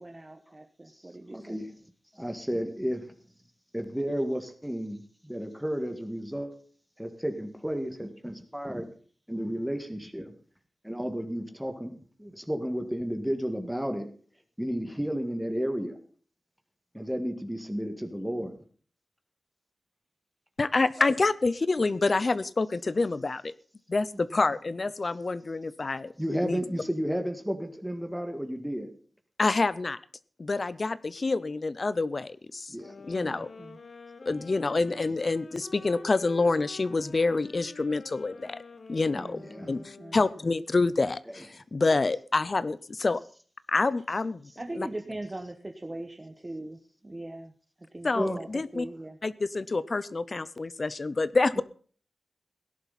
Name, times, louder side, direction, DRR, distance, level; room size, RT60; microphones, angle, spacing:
voice 1, 0.0-1.6 24.1-24.5 33.2-33.8 39.1-40.5 44.6-49.2 51.5-51.6, right 1 dB, 20° right, 3 dB, 1.2 m, -41 dB
voice 2, 1.3-1.7 2.2-3.0 3.7-6.5 7.0-8.9 9.3-10.3 10.8-11.9 12.2-14.1 14.6-16.0 16.9-18.6 21.0-21.1 26.2-28.9 32.7-32.9 39.5-39.7 48.1-48.4, equal, 5° right, 6 dB, 1.8 m, -32 dB
voice 3, 20.6-23.5 23.9-26.1 26.4-26.6 29.4-30.0 30.4-32.7 33.1-33.5 34.3-38.6 38.9-39.4 39.7-43.2 43.7-44.5 44.8-44.9 48.0-48.8 49.2-51.6, left 3 dB, 40° left, 17 dB, 0.6 m, -27 dB
sound 1, 32.8-40.8, left 4 dB, 60° left, 1.7 m, -48 dB
17.0 x 11.0 x 4.1 m, 0.43 s
wide cardioid pair, 130°, 0 cm